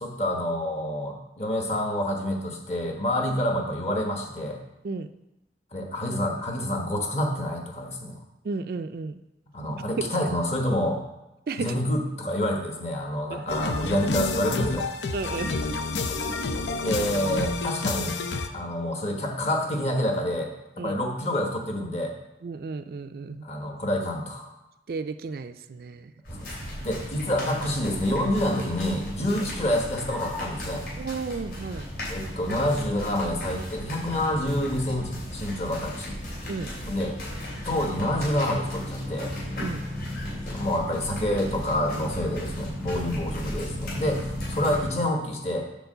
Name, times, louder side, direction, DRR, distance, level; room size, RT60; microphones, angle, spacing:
voice 1, 0.0-4.6 5.7-8.2 9.5-11.0 11.6-14.9 16.8-18.2 18.5-20.5 20.8-22.1 23.4-24.5 26.3-26.6 26.8-30.9 32.1-36.2 36.9-37.2 37.6-39.3 40.5-45.6, left 1 dB, 35° left, 2 dB, 1.2 m, -27 dB
voice 2, 8.4-9.2 10.0-10.1 11.5-11.8 13.3-13.4 15.1-15.7 20.8-20.9 22.4-23.5 24.9-26.1 29.3-29.4 31.0-31.9 36.5-36.7 39.6-39.8 42.9-43.1, right 4 dB, 55° right, 10 dB, 0.4 m, -33 dB
sound 1, 13.5-18.5, left 3 dB, 85° left, 0.7 m, -29 dB
sound 2, 26.2-44.9, equal, 60° left, 3.2 m, -35 dB
6.9 x 4.5 x 6.7 m, 0.93 s
head